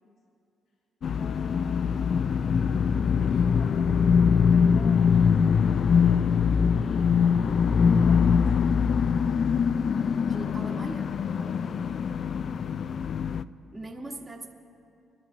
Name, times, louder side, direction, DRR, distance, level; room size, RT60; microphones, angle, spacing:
sound 1, 1.0-13.4, left 6 dB, 55° left, 0.3 m, -23 dB
voice 1, 1.1-7.4 7.9-8.7 11.4-12.1, left 3 dB, 90° left, -4 dB, 1.5 m, -47 dB
voice 2, 10.3-11.2 13.7-14.5, right 2 dB, 20° right, -1 dB, 1.3 m, -39 dB
29.0 x 11.5 x 2.7 m, 2.6 s
cardioid pair, 90°, 0 cm